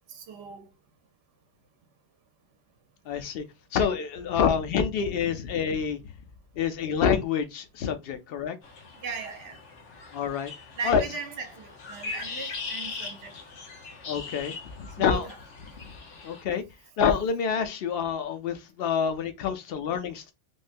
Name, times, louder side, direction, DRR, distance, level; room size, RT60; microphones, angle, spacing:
voice 1, 0.1-0.7 9.0-9.6 10.8-13.3 15.0-15.4, right 4 dB, 65° right, 0.9 m, -38 dB
voice 2, 3.1-3.4 3.7-6.0 6.6-8.6 10.1-10.5 10.8-11.0 14.1-15.3 16.2-16.6 17.0-20.3, left 7 dB, 60° left, 0.8 m, -27 dB
sound 1, 8.6-16.4, left 4 dB, 80° left, 1.1 m, -40 dB
3.5 x 2.1 x 2.5 m
omnidirectional pair, 1.2 m